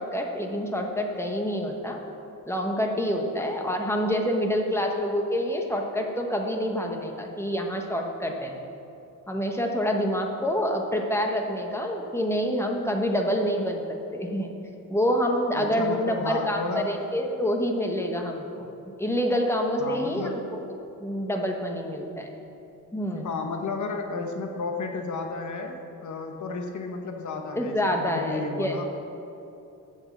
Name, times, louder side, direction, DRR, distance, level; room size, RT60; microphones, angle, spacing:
voice 1, 0.0-2.0 2.4-8.6 9.3-14.5 14.9-18.7 19.0-20.4 21.0-22.3 22.9-23.3 27.5-28.8, equal, 10° left, 2 dB, 0.9 m, -27 dB
voice 2, 15.5-17.0 19.8-20.6 23.1-28.9, left 4 dB, 65° left, 4 dB, 0.9 m, -33 dB
8.1 x 7.2 x 7.1 m, 2.9 s
wide cardioid pair, 170°, 32 cm